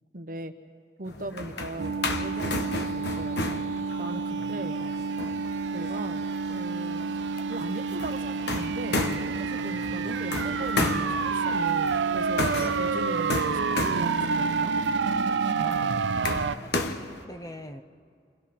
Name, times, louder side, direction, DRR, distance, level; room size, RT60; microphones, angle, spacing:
voice 1, 0.1-0.5 1.0-1.9 2.2-3.7 4.0-4.8 5.7-6.3 6.5-7.1 7.5-14.8, right 1 dB, 50° right, 8 dB, 1.0 m, -38 dB
sound 1, 1.1-17.2, left 2 dB, 70° left, 1.3 m, -34 dB
sound 2, 1.8-16.6, right 5 dB, 85° right, 0.5 m, -28 dB
voice 2, 4.4-4.9 12.5-12.7 15.6-15.9 16.6-17.8, equal, 20° left, 7 dB, 0.8 m, -43 dB
29.5 x 25.5 x 4.3 m, 2.3 s
head